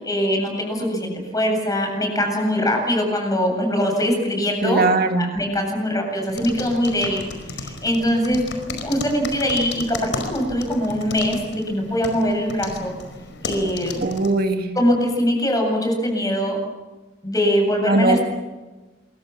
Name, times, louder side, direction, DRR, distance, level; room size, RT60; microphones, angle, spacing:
voice 1, 0.0-4.8 5.2-8.4 8.8-12.9 13.4-14.0 14.7-16.6 17.2-18.2, equal, 20° left, 2 dB, 7.9 m, -22 dB
voice 2, 4.6-5.3 14.0-14.7 17.9-18.2, right 2 dB, 55° right, 5 dB, 2.0 m, -19 dB
Keyboard typing, 6.3-14.3, left 3 dB, 75° left, 5.1 m, -34 dB
28.0 x 24.0 x 7.3 m, 1.2 s
head